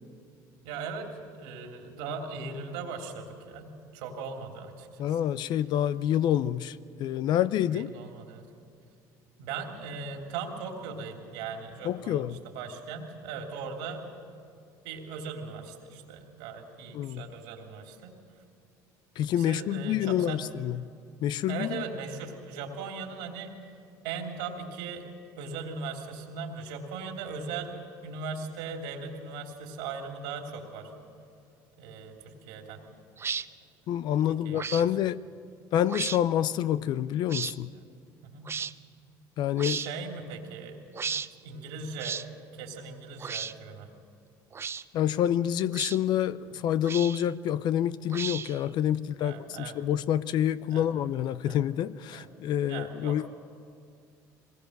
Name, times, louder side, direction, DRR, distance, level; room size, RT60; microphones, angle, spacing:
voice 1, 0.6-5.2 7.6-8.4 9.4-12.3 12.5-14.0 14.8-18.1 19.4-20.4 21.5-23.5 24.0-25.0 25.4-27.8 28.0-30.9 31.8-32.8 34.4-34.8 37.7-37.9 38.2-38.5 39.6-41.0 41.4-42.2 42.5-43.9 48.9-49.8 50.7-50.9 51.4-51.6 52.1-52.3 52.6-53.2, right 5 dB, 85° right, 3.1 m, -39 dB
voice 2, 5.0-7.9 11.8-12.4 16.9-17.3 19.2-20.9 21.2-21.8 33.9-35.2 35.7-37.7 39.4-39.8 44.9-53.3, left 10 dB, 60° left, 0.5 m, -27 dB
sound 1, 33.2-33.5 34.5-34.9 35.9-36.2 37.3-37.5 38.5-38.7 39.6-39.9 40.9-41.3 42.0-42.3 43.2-43.5 44.5-44.8 45.7-46.0 46.8-47.3 48.1-48.6, right 6 dB, 30° right, 0.5 m, -34 dB
22.5 x 20.0 x 6.6 m
supercardioid pair, 95°, 8 cm